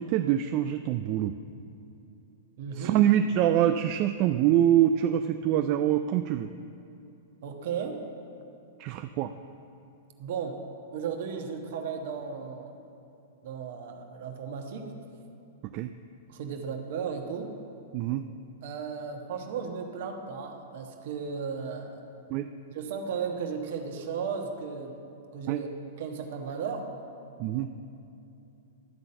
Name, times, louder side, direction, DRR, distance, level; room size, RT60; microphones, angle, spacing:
voice 1, 0.0-1.3 2.8-6.5 8.8-9.3 15.7-15.9 17.9-18.2 22.3-22.5 25.5-25.6 27.4-27.7, right 11 dB, 45° right, 8 dB, 0.3 m, -25 dB
voice 2, 2.6-3.0 7.4-8.0 10.2-10.6 10.9-12.7 13.4-14.9 16.3-17.5 18.6-22.0 22.7-25.0 25.3-25.7 26.0-26.9, right 6 dB, 65° right, 3 dB, 1.2 m, -35 dB
12.0 x 4.0 x 7.7 m, 2.7 s
hypercardioid pair, 125°, 0 cm